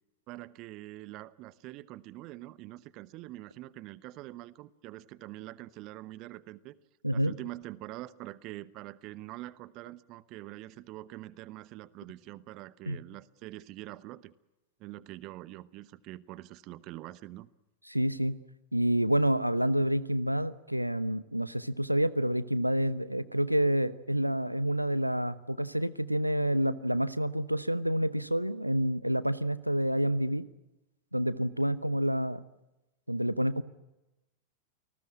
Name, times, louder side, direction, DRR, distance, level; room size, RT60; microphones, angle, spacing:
voice 1, 0.3-6.8 7.1-14.3 14.8-17.5, right 16 dB, 40° right, 19 dB, 1.0 m, -45 dB
voice 2, 17.9-18.4 18.7-30.4 31.1-32.4 33.1-33.6, right 1 dB, 90° right, 18 dB, 0.9 m, -28 dB
29.0 x 19.5 x 8.8 m, 0.98 s
figure-of-eight pair, 90°, 0 cm